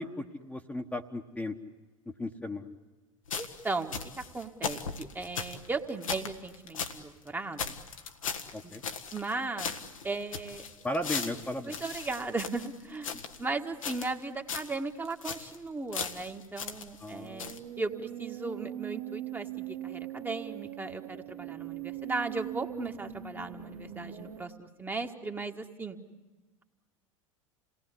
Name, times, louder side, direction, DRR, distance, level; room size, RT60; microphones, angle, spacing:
voice 1, 0.0-1.6 2.1-2.7 8.5-8.8 10.8-11.8 13.1-13.2 17.0-17.6, left 1 dB, 10° left, 2 dB, 1.4 m, -36 dB
sound 1, 3.3-7.0 7.3-7.4 7.6-9.3 9.6-13.4 13.8-14.2 14.5-14.8 15.0-15.6 15.9-17.1 17.4-17.6, left 6 dB, 75° left, 1.6 m, -38 dB
voice 2, 3.3-7.7 8.6-8.7 9.1-9.7 10.0-10.6 11.6-13.1 13.4-26.0, right 3 dB, 10° right, 4 dB, 1.7 m, -37 dB
sound 2, 17.2-24.5, right 12 dB, 65° right, 1.4 m, -41 dB
28.5 x 19.0 x 9.8 m, 1.2 s
figure-of-eight pair, 80°, 17 cm